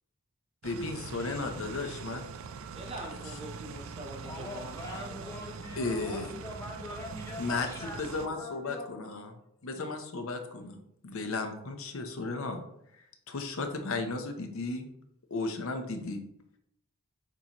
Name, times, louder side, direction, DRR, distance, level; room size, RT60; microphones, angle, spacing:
voice 1, 0.6-2.3 3.2-3.3 5.8-6.3 7.4-7.7 8.0-9.3 9.6-10.8 11.0-12.6 12.9-14.9 15.3-16.2, left 3 dB, 65° left, 5 dB, 0.6 m, -34 dB
sound 1, 0.6-8.3, right 5 dB, 60° right, 0.3 m, -43 dB
voice 2, 2.7-5.6, right 1 dB, 25° right, 1 dB, 0.8 m, -44 dB
voice 3, 4.2-8.9, left 2 dB, 15° left, -1 dB, 0.8 m, -43 dB
6.6 x 2.8 x 2.9 m, 0.77 s
head